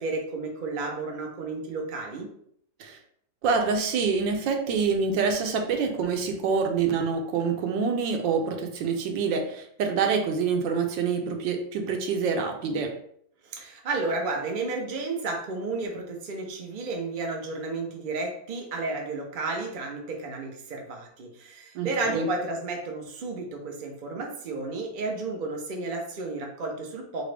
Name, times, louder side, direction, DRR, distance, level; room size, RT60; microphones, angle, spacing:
voice 1, 0.0-2.3 13.4-27.2, right 3 dB, 60° right, 1 dB, 0.5 m, -32 dB
voice 2, 3.4-13.0 21.7-22.3, right 5 dB, 75° right, 4 dB, 1.3 m, -26 dB
3.9 x 3.3 x 3.3 m, 0.67 s
omnidirectional pair, 2.1 m